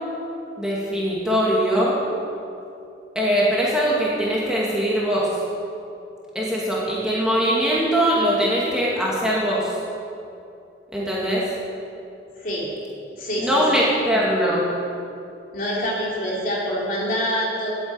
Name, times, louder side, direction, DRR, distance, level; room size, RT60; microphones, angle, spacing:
voice 1, 0.6-2.0 3.1-5.3 6.3-9.7 10.9-11.5 13.4-14.7, equal, 5° right, -6 dB, 2.5 m, -21 dB
voice 2, 13.1-13.6 15.5-17.7, equal, 50° left, -5 dB, 3.6 m, -25 dB
12.5 x 9.5 x 9.0 m, 2.6 s
head